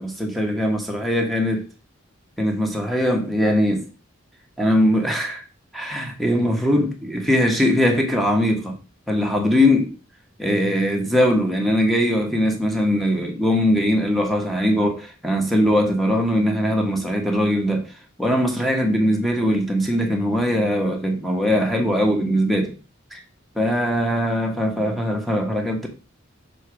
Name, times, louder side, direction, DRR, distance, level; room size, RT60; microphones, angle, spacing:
voice 1, 0.0-1.6 2.4-3.9 4.6-5.4 5.7-8.8 9.1-9.9 10.4-17.9 18.2-22.7 23.1-23.2 23.5-25.9, equal, ahead, 1.2 m, -21 dB
6.7 x 3.9 x 4.7 m
head